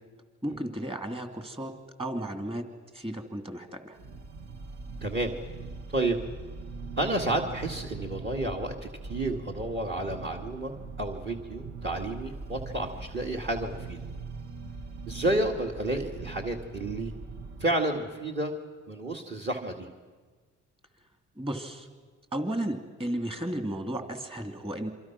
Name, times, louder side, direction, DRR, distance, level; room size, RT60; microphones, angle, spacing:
voice 1, 0.4-1.7 2.0-2.6 2.9-4.0 21.4-21.9 22.3-24.9, right 1 dB, 20° right, 6 dB, 2.7 m, -34 dB
sound 1, 4.0-17.6, right 3 dB, 60° right, 1.8 m, -41 dB
voice 2, 5.0-5.3 5.9-6.2 7.0-10.7 11.0-14.0 15.1-17.1 17.6-18.5 18.9-19.9, right 1 dB, 35° right, 4 dB, 2.2 m, -30 dB
27.5 x 24.0 x 6.1 m, 1.4 s
cardioid pair, 90°, 30 cm